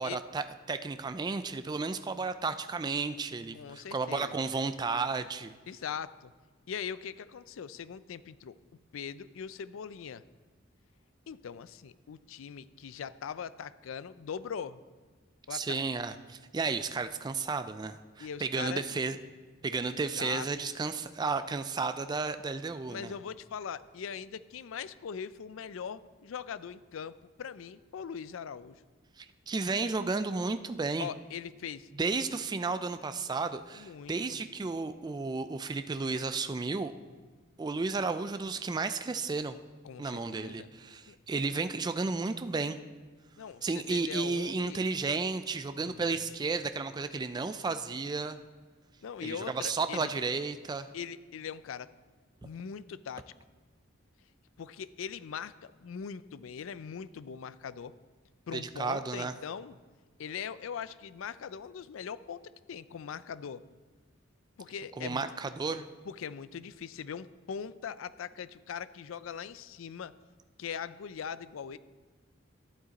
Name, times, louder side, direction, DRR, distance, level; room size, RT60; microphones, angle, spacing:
voice 1, 0.0-5.6 15.5-19.2 19.6-23.1 29.2-31.1 32.0-36.9 37.6-39.6 40.0-42.8 43.6-48.4 49.2-50.9 58.5-59.3 65.0-65.9, right 4 dB, 20° right, 10 dB, 0.3 m, -33 dB
voice 2, 3.5-4.4 5.7-6.3 6.7-8.5 8.9-10.2 11.3-14.8 15.5-15.8 18.2-18.9 19.9-20.5 22.9-28.8 31.0-31.9 33.7-34.4 39.8-40.7 41.1-41.2 43.4-44.8 45.9-46.1 49.0-50.1 50.9-51.9 52.4-53.3 54.6-57.9 58.5-59.7 60.2-62.4 62.7-63.6 64.6-65.3 66.1-70.1 70.6-71.8, left 7 dB, 70° left, 16 dB, 0.4 m, -41 dB
11.0 x 8.9 x 4.1 m, 1.4 s
head